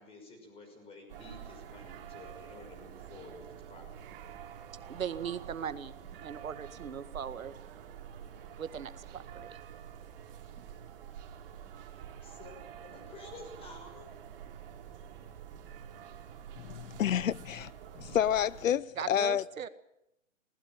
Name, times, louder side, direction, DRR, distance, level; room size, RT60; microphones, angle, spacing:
voice 1, 0.0-4.1 12.2-12.6 12.8-14.1, left 3 dB, 15° left, 5.9 m, -51 dB
sound 1, 1.1-18.7, right 8 dB, 45° right, 3.1 m, -48 dB
voice 2, 4.9-7.5 8.6-9.6 10.6-10.7 19.0-19.7, right 8 dB, 80° right, 1.9 m, -39 dB
voice 3, 16.6-17.7 18.0-19.4, left 9 dB, 70° left, 0.8 m, -29 dB
20.0 x 19.5 x 7.5 m
hypercardioid pair, 155°, 40 cm